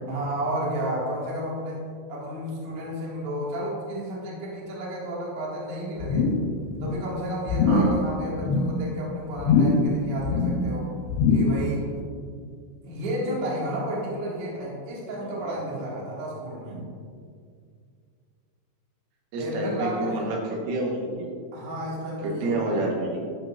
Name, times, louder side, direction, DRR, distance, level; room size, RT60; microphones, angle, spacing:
voice 1, 0.1-6.3 6.8-10.9 11.3-11.9 12.8-16.8 19.4-20.3 21.5-22.7, right 1 dB, 50° right, -6 dB, 1.7 m, -32 dB
sound 1, 6.0-6.5 6.8-7.1 7.5-8.0 8.3-8.8 9.4-9.9 10.2-10.7 11.1-11.6 12.0-12.1, left 4 dB, 80° left, 2.8 m, -22 dB
voice 2, 7.7-8.0 15.2-15.8 16.7-16.8 19.3-21.3 22.2-23.2, right 2 dB, 80° right, -2 dB, 3.8 m, -29 dB
13.5 x 5.5 x 2.5 m, 2.2 s
omnidirectional pair, 5.7 m